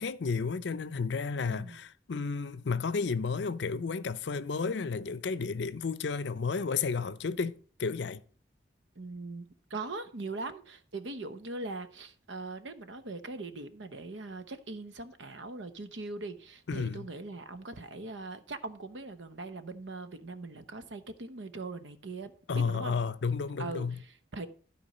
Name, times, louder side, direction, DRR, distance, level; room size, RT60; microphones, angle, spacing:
voice 1, 0.0-8.2 16.7-17.1 22.5-24.0, left 5 dB, 75° left, 0.5 m, -32 dB
voice 2, 1.4-1.8 8.9-23.0 23.6-24.5, right 3 dB, 85° right, 0.8 m, -41 dB
12.0 x 4.5 x 5.4 m
head